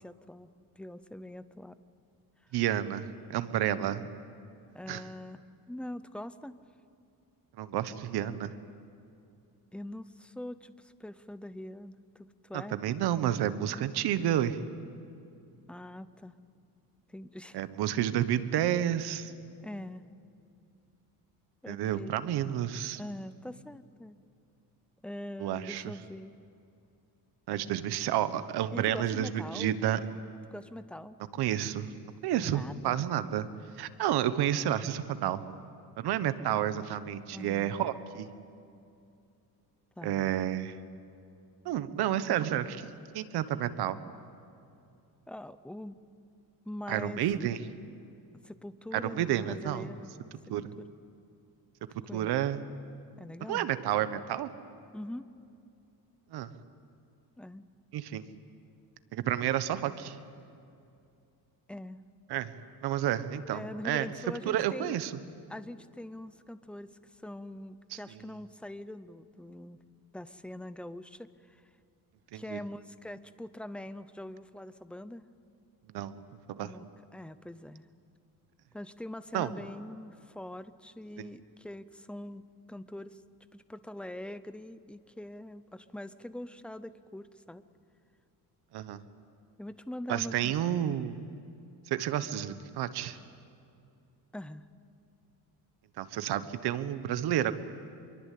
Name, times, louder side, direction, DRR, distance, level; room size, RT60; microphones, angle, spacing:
voice 1, 0.0-1.8 4.7-6.6 9.7-12.8 15.7-16.4 17.1-17.6 19.6-20.1 21.6-22.2 22.9-24.2 25.0-26.4 28.7-29.8 30.5-31.2 32.4-33.0 37.3-37.8 40.0-40.3 45.3-46.0 46.7-47.2 48.4-50.1 50.8-50.9 52.1-52.3 53.2-53.7 54.9-55.3 57.4-57.7 61.7-62.0 63.5-64.9 65.5-69.8 70.1-71.6 72.3-75.2 76.6-76.9 77.1-77.9 78.7-83.2 83.5-87.6 89.6-90.5 94.3-94.6, left 1 dB, 5° left, 13 dB, 0.6 m, -43 dB
voice 2, 2.5-4.1 4.9-5.0 7.6-8.5 12.7-14.7 17.5-19.3 21.7-23.0 25.4-25.8 27.5-30.0 31.4-31.9 32.2-33.5 33.8-35.4 36.0-38.3 40.0-40.7 41.6-42.9 43.1-44.0 46.9-47.6 48.9-49.9 50.5-50.7 52.1-52.6 53.5-54.5 56.3-56.5 57.9-58.2 59.1-60.2 62.3-62.5 62.8-64.1 64.4-65.1 72.3-72.6 75.9-76.2 76.5-76.7 79.3-79.5 81.2-81.3 88.7-89.0 90.1-91.2 91.9-93.2 96.0-97.5, right 11 dB, 80° right, 12 dB, 1.3 m, -30 dB
25.5 x 23.0 x 8.5 m, 2.6 s
cardioid pair, 160°, 38 cm